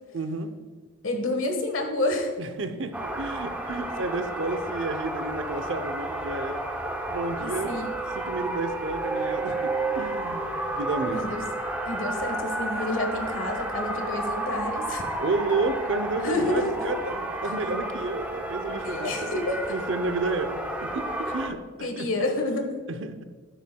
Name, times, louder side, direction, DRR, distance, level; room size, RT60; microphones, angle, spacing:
voice 1, 0.1-0.5 2.4-6.6 7.1-7.7 8.2-11.2 15.2-19.3 19.7-22.1 22.9-23.2, right 3 dB, 65° right, 9 dB, 0.7 m, -31 dB
voice 2, 1.0-2.3 7.4-7.9 11.0-11.4 11.8-15.2 16.2-16.7 18.8-19.6 21.8-22.8, left 2 dB, 75° left, 4 dB, 1.4 m, -29 dB
sound 1, 2.9-21.5, right 1 dB, 5° right, 0.7 m, -31 dB
9.9 x 8.4 x 2.3 m, 1.5 s
head